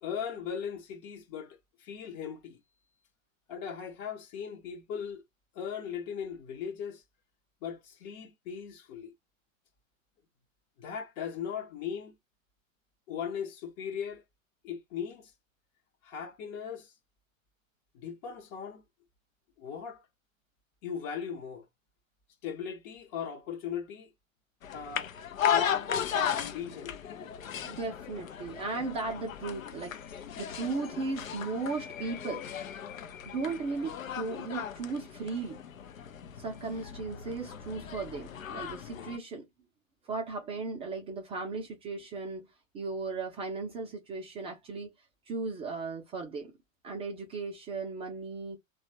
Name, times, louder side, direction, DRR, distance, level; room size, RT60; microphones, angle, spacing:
voice 1, 0.0-2.6 3.5-5.2 5.5-7.0 7.6-9.1 10.8-12.1 13.1-14.2 14.6-15.3 16.0-16.9 17.9-18.8 19.6-20.0 20.8-21.7 22.4-24.1 24.7-25.1 25.5-26.9, left 7 dB, 30° left, 0.6 m, -38 dB
sound 1, 24.6-39.2, left 9 dB, 75° left, 0.6 m, -36 dB
voice 2, 27.6-32.4 33.3-35.6 36.4-39.5 40.0-44.9 45.3-46.5 46.8-48.6, right 4 dB, 15° right, 0.4 m, -36 dB
2.9 x 2.3 x 2.7 m
figure-of-eight pair, 95°, 40 cm